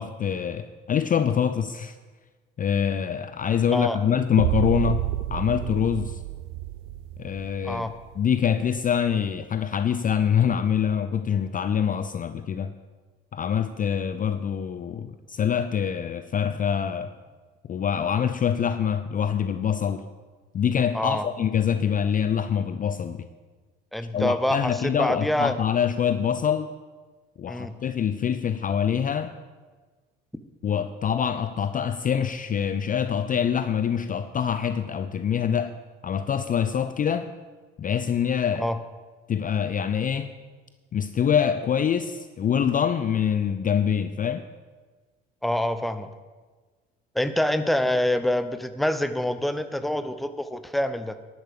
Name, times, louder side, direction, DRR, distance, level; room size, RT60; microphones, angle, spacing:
voice 1, 0.0-2.0 2.6-5.0 5.3-6.2 7.2-7.9 8.2-12.7 13.3-17.1 17.7-20.0 20.5-23.3 24.1-26.7 27.4-29.3 30.6-35.7 36.0-37.3 37.8-38.7 39.3-40.3 40.9-44.5, left 8 dB, 30° left, 11 dB, 0.6 m, -25 dB
sound 1, 4.4-8.4, right 14 dB, 50° right, 0.5 m, -30 dB
voice 2, 20.9-21.2 23.9-25.5 27.5-27.7 38.6-38.8 45.4-46.1 47.1-51.2, left 1 dB, ahead, 11 dB, 0.8 m, -26 dB
11.0 x 8.4 x 6.9 m, 1.4 s
figure-of-eight pair, 60°, 30 cm